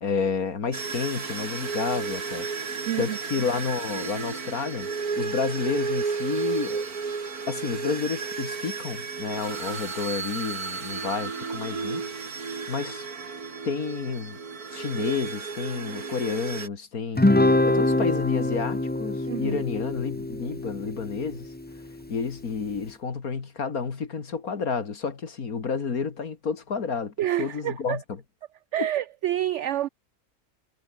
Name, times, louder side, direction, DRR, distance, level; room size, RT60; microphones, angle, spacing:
voice 1, 0.0-2.5 3.0-4.9 5.2-7.1 7.5-12.0 12.7-13.1 13.6-14.4 14.7-21.5 22.1-28.0 28.8-28.9, left 5 dB, 75° left, 2.6 m, -30 dB
sound 1, 0.7-16.7, right 5 dB, 85° right, 2.9 m, -33 dB
voice 2, 2.9-3.2 19.3-19.6 27.2-28.0 28.7-29.9, right 12 dB, 65° right, 0.8 m, -28 dB
Guitar, 17.2-21.8, left 2 dB, 10° left, 0.4 m, -24 dB
omnidirectional pair, 1.5 m